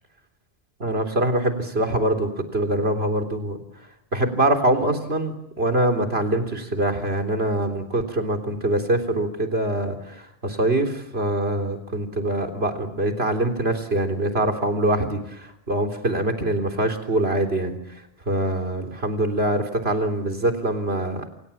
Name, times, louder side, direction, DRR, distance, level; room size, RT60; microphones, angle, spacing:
voice 1, 0.8-3.6 4.1-17.8 18.3-21.2, right 1 dB, 80° right, 4 dB, 3.9 m, -24 dB
29.0 x 27.5 x 7.2 m, 0.79 s
omnidirectional pair, 1.0 m